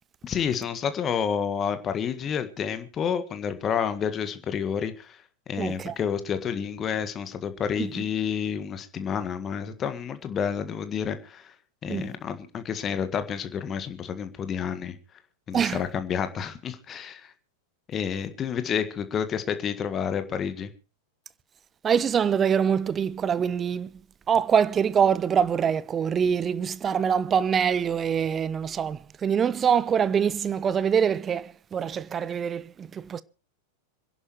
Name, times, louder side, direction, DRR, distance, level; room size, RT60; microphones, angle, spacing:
voice 1, 0.2-11.5 11.8-15.0 15.5-17.3 17.9-20.7, left 7 dB, 25° left, 1.6 m, -29 dB
voice 2, 5.6-6.0 7.9-8.0 11.9-12.1 15.5-15.8 21.8-23.9 24.3-33.2, right 7 dB, 25° right, 0.7 m, -24 dB
26.5 x 11.0 x 3.1 m
figure-of-eight pair, 90°, 0 cm